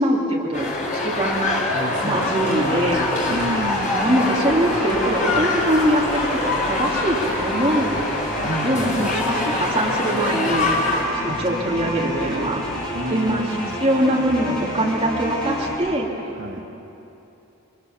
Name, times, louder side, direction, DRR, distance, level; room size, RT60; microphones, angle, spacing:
voice 1, 0.0-1.5 2.0-3.1 3.8-8.0 8.6-10.7 11.1-12.6 13.1-13.4 13.8-16.1, right 1 dB, 25° right, -3 dB, 2.7 m, -22 dB
sound 1, 0.5-11.0, left 2 dB, 35° left, 4.3 m, -24 dB
voice 2, 1.7-2.3 2.5-2.7 3.3-3.9 8.4-9.1 11.2-11.4 11.7-12.5 12.9-13.8 16.3-16.7, right 1 dB, 55° right, 0 dB, 1.4 m, -30 dB
sound 2, 2.0-15.7, left 1 dB, 5° left, 7.6 m, -30 dB
28.0 x 22.5 x 7.2 m, 2.9 s
head